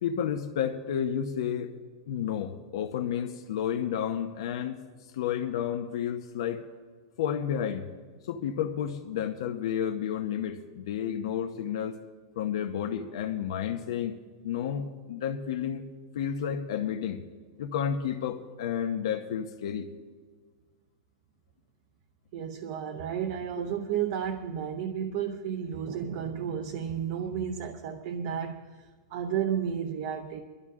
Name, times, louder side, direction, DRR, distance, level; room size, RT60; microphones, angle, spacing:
voice 1, 0.0-1.7 2.1-4.8 5.1-6.6 7.2-7.9 8.2-11.9 12.4-14.1 14.4-15.8 16.1-17.2 17.6-19.9, left 9 dB, 65° left, 5 dB, 0.8 m, -31 dB
voice 2, 22.3-30.4, right 8 dB, 45° right, 6 dB, 0.7 m, -32 dB
22.0 x 12.5 x 3.7 m, 1.5 s
supercardioid pair, 175°, 3 cm